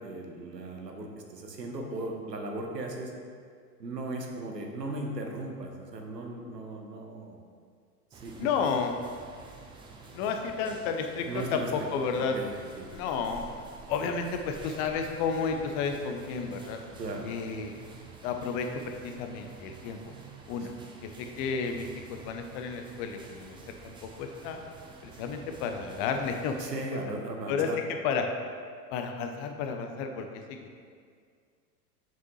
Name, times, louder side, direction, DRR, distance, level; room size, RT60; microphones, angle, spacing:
voice 1, 0.0-3.1 3.8-7.4 8.1-8.5 11.3-11.7 12.3-12.9 17.0-17.3 20.6-20.7 26.6-27.8, right 2 dB, 85° right, 2 dB, 1.0 m, -37 dB
sound 1, 8.1-26.7, right 4 dB, 10° right, 0.4 m, -49 dB
voice 2, 8.4-8.9 10.1-12.4 12.9-13.4 13.9-16.8 17.2-17.8 18.2-20.0 20.5-20.7 21.0-23.6 23.8-24.6 25.0-26.6 27.5-27.7 28.0-28.3 28.9-30.8, left 5 dB, 40° left, 5 dB, 0.8 m, -32 dB
7.3 x 5.8 x 3.2 m, 2.1 s
figure-of-eight pair, 90°, 48 cm